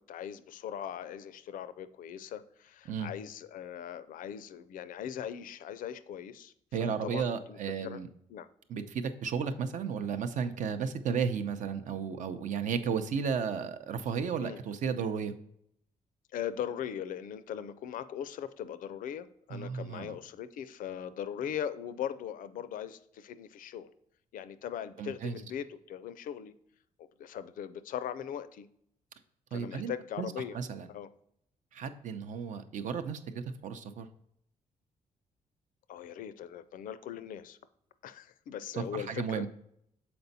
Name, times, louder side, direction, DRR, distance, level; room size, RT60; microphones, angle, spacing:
voice 1, 0.0-6.5 6.8-8.0 8.3-8.5 14.4-14.6 16.3-23.9 24.3-26.5 27.2-28.7 29.5-30.6 30.9-31.1 35.9-37.6 38.0-39.5, left 9 dB, 80° left, 13 dB, 0.5 m, -40 dB
voice 2, 6.7-8.1 8.7-15.3 19.5-20.2 25.0-25.4 29.5-29.9 30.2-30.9 31.7-34.1 38.7-39.5, right 6 dB, 65° right, 9 dB, 0.6 m, -34 dB
6.9 x 4.4 x 4.0 m, 0.72 s
cardioid pair, 140°, 14 cm